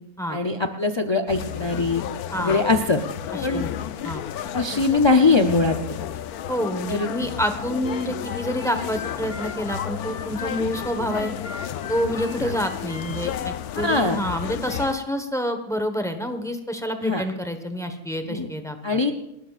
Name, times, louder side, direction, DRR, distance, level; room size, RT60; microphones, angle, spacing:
voice 1, 0.3-2.0 2.4-3.0 3.4-3.7 4.5-5.9 6.9-7.2 12.4-12.5 13.7-14.2 17.0-17.2 18.2-18.5 18.8-19.1, left 3 dB, 40° left, 5 dB, 0.4 m, -21 dB
sound 1, 1.3-14.9, left 10 dB, 90° left, 1.2 m, -32 dB
voice 2, 2.3-2.6 3.3-4.2 6.5-11.3 11.9-19.0, equal, ahead, 6 dB, 1.0 m, -28 dB
Harmonica, 7.8-13.4, left 5 dB, 60° left, 1.4 m, -39 dB
30.0 x 12.5 x 2.5 m, 0.84 s
omnidirectional pair, 1.5 m